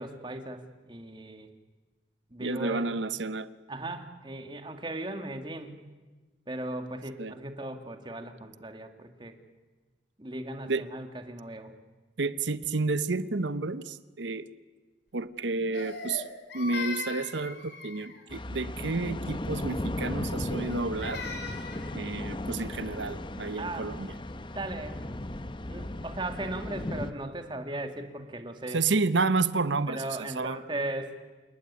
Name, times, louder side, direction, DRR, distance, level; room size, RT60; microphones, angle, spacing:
voice 1, 0.0-1.5 2.3-2.9 3.7-5.9 6.5-9.4 10.2-11.7 23.6-24.0 24.6-25.1 25.7-28.8 29.9-31.1, right 1 dB, 25° right, 6 dB, 2.2 m, -37 dB
voice 2, 2.4-3.5 7.2-7.3 10.7-10.9 12.2-14.5 15.1-16.3 16.5-21.2 21.9-24.1 28.7-30.6, right 3 dB, 80° right, 14 dB, 0.9 m, -30 dB
Crying sobbing, 15.7-18.3 20.5-21.9, left 4 dB, 65° left, 4.8 m, -39 dB
sound 1, 18.3-27.1, left 1 dB, 25° left, 1.0 m, -36 dB
28.5 x 18.5 x 9.7 m, 1.3 s
head